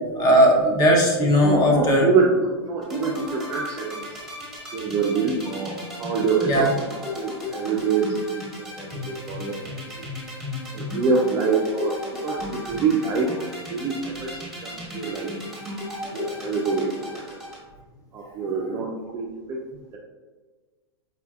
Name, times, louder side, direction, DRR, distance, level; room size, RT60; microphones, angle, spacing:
voice 1, 0.2-2.1 6.5-6.7, equal, 25° left, -1 dB, 0.8 m, -18 dB
voice 2, 1.4-4.2 4.7-10.1 10.7-13.3 13.7-15.3 16.1-17.4 18.1-19.6, right 4 dB, 25° right, -1 dB, 0.4 m, -26 dB
sound 1, 2.8-17.6, left 1 dB, ahead, 1.1 m, -34 dB
4.8 x 2.5 x 2.3 m, 1.3 s
hypercardioid pair, 125°, 14 cm